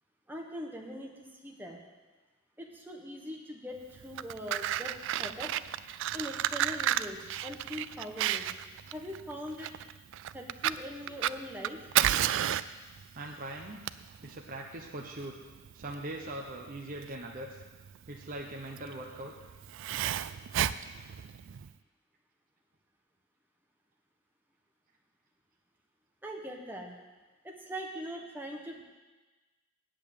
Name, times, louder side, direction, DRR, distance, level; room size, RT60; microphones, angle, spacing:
voice 1, 0.3-1.8 2.6-4.9 5.2-5.5 6.1-8.5 8.9-9.7 10.3-11.8 26.2-26.9 27.4-28.8, equal, 10° right, 0 dB, 1.4 m, -41 dB
Fire, 4.0-21.7, right 11 dB, 60° right, 0.3 m, -33 dB
voice 2, 13.1-13.8 14.2-15.4 15.7-17.6 18.1-19.3, right 1 dB, 40° right, 0 dB, 1.0 m, -41 dB
8.6 x 7.8 x 8.6 m, 1.2 s
head